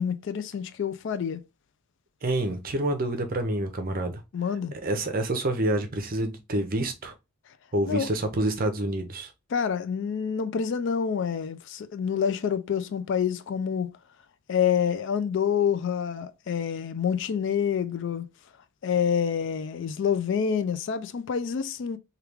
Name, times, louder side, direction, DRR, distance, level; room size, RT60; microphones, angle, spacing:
voice 1, 0.0-1.4 4.3-4.7 7.9-8.1 9.5-13.9 14.5-18.3 18.8-22.0, left 7 dB, 55° left, 0.3 m, -27 dB
voice 2, 2.2-4.2 4.8-7.1 7.7-9.3, right 1 dB, 40° right, 0.6 m, -27 dB
3.2 x 2.3 x 3.3 m
head